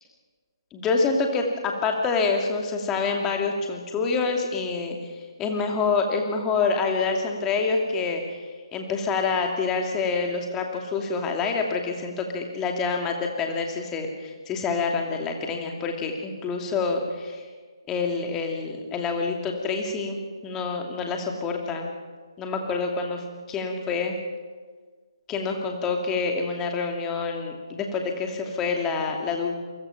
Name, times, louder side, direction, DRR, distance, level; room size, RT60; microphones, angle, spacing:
voice 1, 0.7-5.0 5.4-17.4 17.9-21.9 22.4-23.2 23.5-24.2 25.3-29.5, left 4 dB, 15° left, 2 dB, 2.6 m, -27 dB
28.5 x 24.5 x 5.9 m, 1.5 s
figure-of-eight pair, 140°, 3 cm